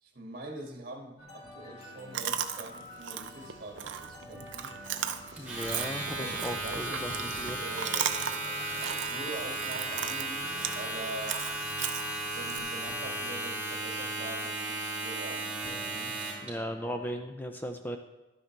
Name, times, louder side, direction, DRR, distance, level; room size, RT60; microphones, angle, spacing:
voice 1, 0.0-4.7 6.1-11.4 12.3-16.2, right 2 dB, 50° right, 1 dB, 2.0 m, -44 dB
sound 1, 1.2-17.2, left 1 dB, 35° left, 1.5 m, -49 dB
Chewing mastication, 2.1-12.6, right 9 dB, 75° right, 0.6 m, -37 dB
voice 2, 5.4-7.1 7.4-7.6 16.4-18.0, equal, 10° left, 5 dB, 0.5 m, -36 dB
Domestic sounds home sounds, 5.4-16.5, right 2 dB, 5° right, 4.1 m, -35 dB
12.0 x 9.8 x 3.3 m, 1.1 s
head